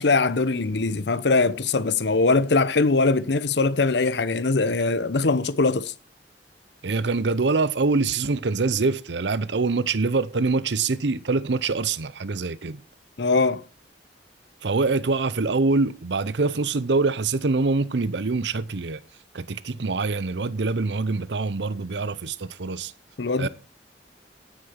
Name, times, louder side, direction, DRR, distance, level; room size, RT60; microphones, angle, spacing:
voice 1, 0.0-5.9 13.2-13.6 23.2-23.5, left 3 dB, 70° left, 0.8 m, -22 dB
voice 2, 6.8-12.8 14.6-19.0 19.3-22.9 23.4-23.5, right 3 dB, 75° right, 0.7 m, -24 dB
11.0 x 9.8 x 5.8 m
head